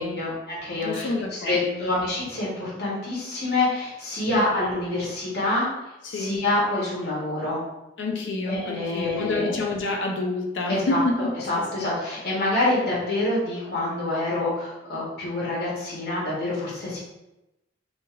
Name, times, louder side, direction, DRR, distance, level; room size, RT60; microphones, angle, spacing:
voice 1, 0.0-5.7 6.1-7.6 8.5-9.6 10.7-11.0 11.3-17.0, left 2 dB, 55° left, -7 dB, 0.8 m, -26 dB
voice 2, 0.8-1.9 4.3-4.6 6.0-6.4 8.0-11.9, left 2 dB, 75° left, 0 dB, 0.5 m, -29 dB
3.0 x 2.4 x 2.3 m, 0.95 s
head